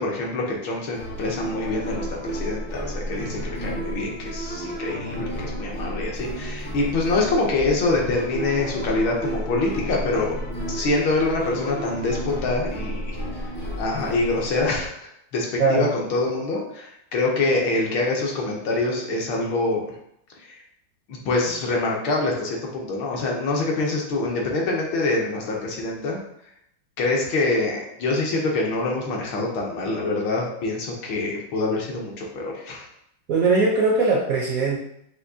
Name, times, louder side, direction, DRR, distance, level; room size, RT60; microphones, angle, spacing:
voice 1, 0.0-10.3 10.7-13.2 13.7-19.9 20.4-20.6 21.1-26.2 27.0-32.9, left 2 dB, 70° left, -1 dB, 1.5 m, -25 dB
sound 1, 0.9-14.9, equal, 50° left, 0.6 m, -32 dB
voice 2, 15.6-15.9 33.3-34.8, right 3 dB, 75° right, -3 dB, 0.8 m, -20 dB
6.1 x 2.6 x 2.7 m, 0.75 s
omnidirectional pair, 2.3 m